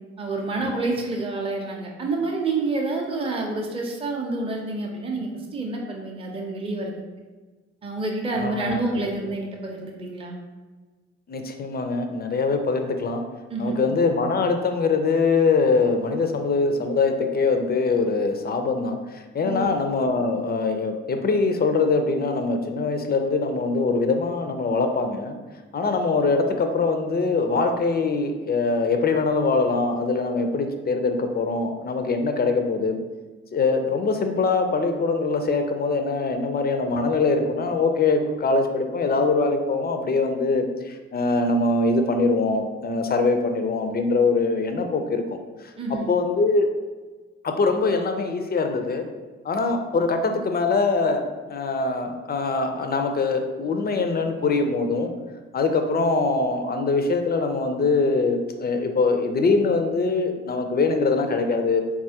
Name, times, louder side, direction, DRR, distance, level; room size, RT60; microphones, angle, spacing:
voice 1, 0.2-6.9 7.8-10.4 13.5-13.8 19.4-19.7 45.8-46.1, right 2 dB, 15° right, 0 dB, 0.6 m, -28 dB
voice 2, 8.4-9.1 11.3-13.2 13.6-25.4 25.7-33.0 33.5-46.7 47.4-49.1 49.4-55.1 55.5-61.8, left 3 dB, 30° left, 6 dB, 0.5 m, -23 dB
4.1 x 2.3 x 2.8 m, 1.3 s
hypercardioid pair, 40°, 33 cm